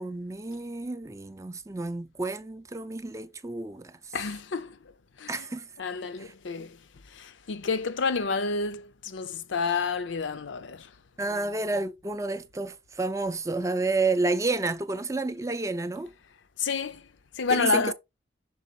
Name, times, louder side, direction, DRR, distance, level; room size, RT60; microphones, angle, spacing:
voice 1, 0.0-4.2 5.3-5.7 6.2-6.3 11.2-16.1 17.5-17.9, right 3 dB, 15° right, 0.4 m, -30 dB
voice 2, 4.1-4.8 5.2-5.4 5.8-6.8 7.1-10.9 11.3-11.4 16.6-17.1 17.4-17.9, left 4 dB, 75° left, 0.6 m, -29 dB
6.2 x 4.0 x 4.1 m
head